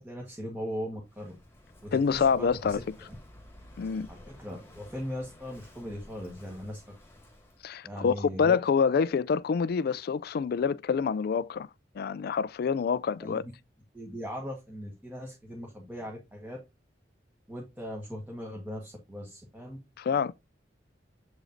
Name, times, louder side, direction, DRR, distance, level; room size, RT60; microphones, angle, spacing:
voice 1, 0.0-1.4 1.8-2.8 4.1-6.9 7.8-8.6 13.2-13.5 13.9-16.6 17.5-19.8, equal, 10° right, 1.3 m, -39 dB
Walk footsteps / Wind / Waves surf, 1.0-7.7, left 1 dB, 15° left, 1.7 m, -52 dB
voice 2, 1.9-2.8 3.8-4.1 7.6-11.7 12.0-13.4 20.0-20.3, left 6 dB, 55° left, 0.3 m, -26 dB
7.7 x 5.0 x 2.6 m
head